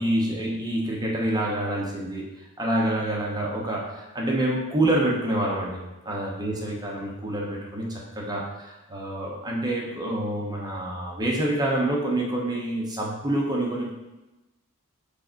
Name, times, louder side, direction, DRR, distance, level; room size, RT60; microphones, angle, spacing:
voice 1, 0.0-2.3 2.6-13.9, right 1 dB, 20° right, -3 dB, 0.8 m, -27 dB
4.8 x 2.5 x 4.4 m, 1.0 s
head